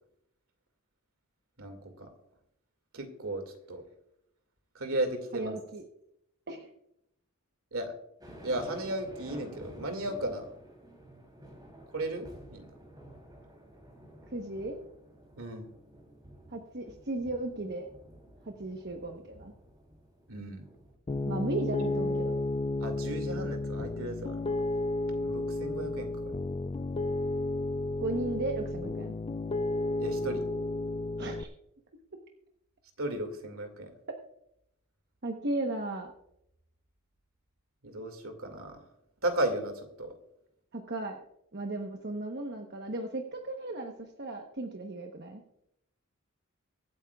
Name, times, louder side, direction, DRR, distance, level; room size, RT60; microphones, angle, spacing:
voice 1, 1.6-2.1 2.9-3.8 4.7-5.6 7.7-7.9 8.4-10.5 11.9-12.7 15.4-15.7 20.3-20.6 22.8-24.6 25.2-26.4 30.0-30.4 33.0-33.9 37.8-38.8 39.2-40.1, right 1 dB, 70° right, 6 dB, 2.2 m, -35 dB
voice 2, 5.3-5.8 6.5-6.7 14.3-14.8 16.5-17.9 18.6-19.5 21.3-22.4 28.0-29.1 31.2-31.5 35.2-36.1 40.7-41.2 41.5-43.9 44.2-45.4, right 2 dB, 50° right, 3 dB, 1.0 m, -35 dB
sound 1, 8.2-20.9, right 1 dB, 20° right, 3.2 m, -51 dB
Piano, 21.1-31.4, left 2 dB, 25° left, 0.3 m, -32 dB
23.5 x 8.9 x 2.4 m, 0.79 s
head